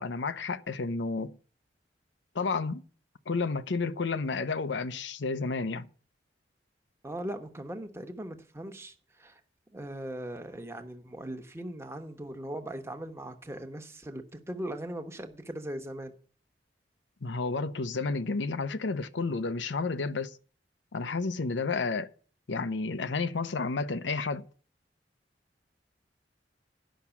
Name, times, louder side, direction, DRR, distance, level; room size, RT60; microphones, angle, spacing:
voice 1, 0.0-1.4 2.3-2.8 3.3-5.9 17.2-20.4 20.9-22.1 22.5-24.4, left 4 dB, 85° left, 0.7 m, -31 dB
voice 2, 7.0-9.4 9.7-16.1, right 1 dB, 15° right, 1.0 m, -39 dB
10.5 x 6.0 x 7.1 m
head